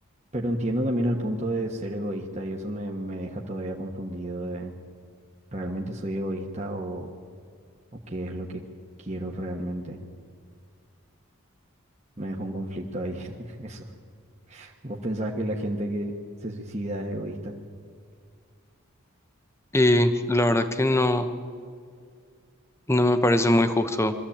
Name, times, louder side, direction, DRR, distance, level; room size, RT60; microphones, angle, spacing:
voice 1, 0.3-4.7 5.5-7.1 8.1-8.6 9.0-10.0 12.2-13.8 14.5-16.1 16.4-17.5, right 1 dB, 30° right, 0 dB, 1.4 m, -31 dB
voice 2, 19.7-21.3 22.9-24.1, left 1 dB, 10° left, 9 dB, 1.0 m, -21 dB
22.5 x 14.5 x 8.8 m, 2.2 s
head